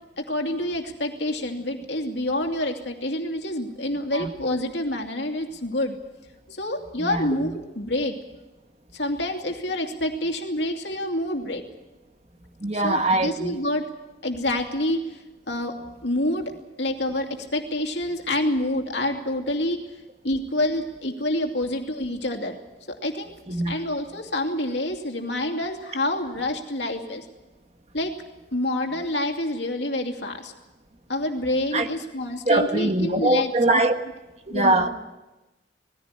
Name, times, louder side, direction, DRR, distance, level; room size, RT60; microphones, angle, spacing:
voice 1, 0.2-6.0 6.5-8.1 8.9-11.6 12.7-13.8 14.2-15.8 16.0-16.5 16.8-19.8 20.2-22.6 22.9-27.3 27.9-28.2 28.5-30.5 31.1-33.8 34.5-34.9, left 1 dB, 70° left, 3 dB, 2.6 m, -27 dB
voice 2, 7.0-7.5 12.6-13.6 23.5-23.8 31.7-31.9 32.5-33.9 34.5-34.9, right 2 dB, 35° right, 6 dB, 1.5 m, -22 dB
20.0 x 15.5 x 9.9 m, 1.1 s
head